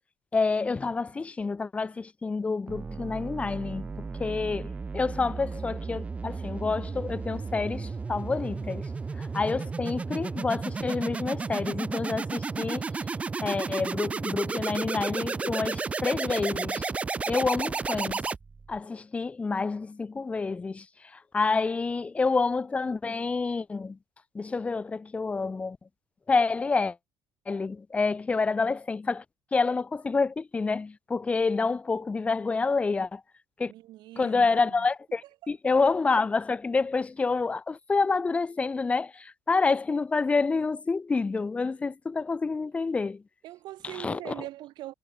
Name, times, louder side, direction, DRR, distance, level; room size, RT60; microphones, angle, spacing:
voice 1, 0.3-8.9 9.2-12.9 13.4-16.8 17.3-18.2 18.7-20.9 21.1-24.0 24.3-25.8 26.3-27.0 27.5-29.2 29.5-33.2 33.6-33.7 34.2-43.2 44.0-44.3, left 4 dB, 15° left, 1.9 m, -28 dB
sound 1, 2.7-18.8, right 4 dB, 15° right, 0.7 m, -33 dB
voice 2, 33.7-34.9 35.2-35.5 43.4-44.9, right 15 dB, 60° right, 6.4 m, -42 dB
cardioid pair, 180°, 9 cm